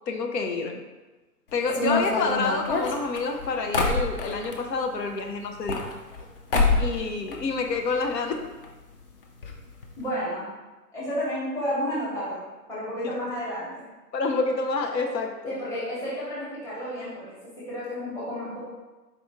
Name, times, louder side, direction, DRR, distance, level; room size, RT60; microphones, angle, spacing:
voice 1, 0.1-0.8 1.5-5.9 6.8-8.5 14.1-15.5, left 4 dB, 80° left, 4 dB, 0.7 m, -28 dB
sound 1, 1.7-4.6 5.4-6.2 6.5-7.0 7.3-8.1 8.3-8.4 8.6-8.7 9.4-9.5 9.8-10.0, left 3 dB, 40° left, 0.4 m, -26 dB
voice 2, 10.0-10.5 10.9-12.4 12.7-13.7 15.4-18.6, equal, 5° left, -9 dB, 0.9 m, -31 dB
4.2 x 2.6 x 3.4 m, 1.2 s
figure-of-eight pair, 125°, 49 cm